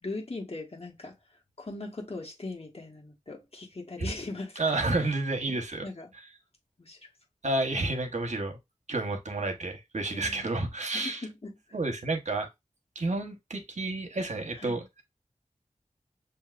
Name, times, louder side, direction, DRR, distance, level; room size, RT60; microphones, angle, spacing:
voice 1, 0.0-1.1 1.6-4.8 5.5-5.6 5.8-6.1 6.8-7.0 10.1-10.5 10.9-11.6 14.6-14.8, left 2 dB, 50° left, 1.4 m, -39 dB
voice 2, 4.6-5.8 7.4-8.6 8.9-11.2 11.7-12.5 12.9-15.0, right 2 dB, 65° right, 1.1 m, -30 dB
6.9 x 2.7 x 2.5 m
wide cardioid pair, 60°, 13 cm